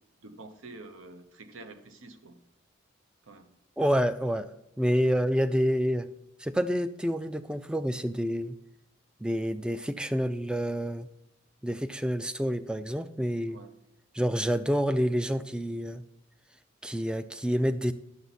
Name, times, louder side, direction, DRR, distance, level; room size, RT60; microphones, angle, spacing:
voice 1, 0.2-2.4 3.2-3.6 13.5-13.8, right 2 dB, 80° right, 8 dB, 0.8 m, -48 dB
voice 2, 3.8-4.5 4.8-6.1 6.4-8.5 9.2-11.1 11.6-13.6 14.1-16.0 16.8-17.9, equal, 5° right, 12 dB, 0.3 m, -28 dB
9.6 x 7.0 x 4.1 m, 0.90 s
head